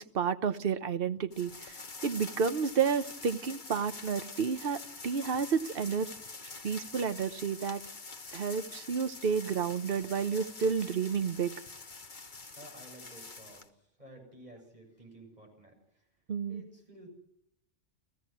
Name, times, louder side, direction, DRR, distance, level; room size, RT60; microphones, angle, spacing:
voice 1, 0.0-6.1 6.6-7.8 8.3-11.5 16.3-16.6, right 6 dB, 55° right, 11 dB, 1.1 m, -31 dB
sound 1, 1.3-13.7, left 3 dB, 40° left, 1.6 m, -46 dB
voice 2, 12.6-13.6 14.0-15.7 16.5-17.1, right 1 dB, 35° right, 2 dB, 7.5 m, -52 dB
30.0 x 16.0 x 6.1 m, 0.74 s
omnidirectional pair, 1.2 m